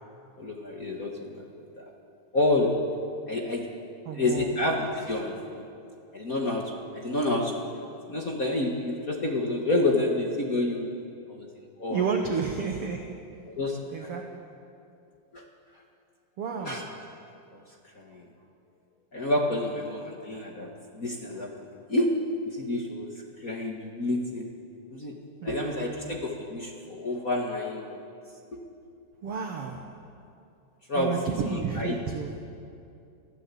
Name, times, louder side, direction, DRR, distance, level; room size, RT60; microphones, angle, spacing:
voice 1, 0.4-1.9 2.3-3.7 4.1-5.6 6.1-10.9 11.3-11.5 11.8-12.1 13.5-14.1 15.3-15.5 16.6-16.9 17.5-18.3 19.1-24.5 24.9-25.2 25.4-28.0 28.5-28.6 30.9-31.1 31.5-31.9, left 2 dB, 35° left, 0 dB, 1.4 m, -29 dB
voice 2, 4.0-4.5 11.9-13.2 13.9-14.5 16.4-16.9 25.4-26.1 29.2-30.0 30.9-32.3, right 6 dB, 60° right, 4 dB, 1.7 m, -31 dB
25.5 x 16.0 x 8.5 m, 2.6 s
omnidirectional pair, 4.1 m